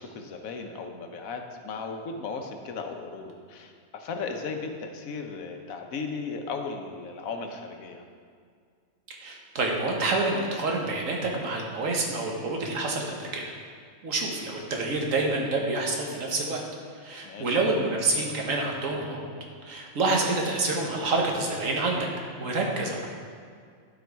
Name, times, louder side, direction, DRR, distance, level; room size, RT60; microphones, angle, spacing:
voice 1, 0.0-8.0 17.2-17.6, left 4 dB, 85° left, 4 dB, 1.2 m, -36 dB
voice 2, 9.2-13.5 14.0-16.6 16.9-19.3 19.6-22.1 22.3-23.1, right 2 dB, 75° right, 0 dB, 1.6 m, -27 dB
11.5 x 4.7 x 4.6 m, 2.1 s
omnidirectional pair, 1.4 m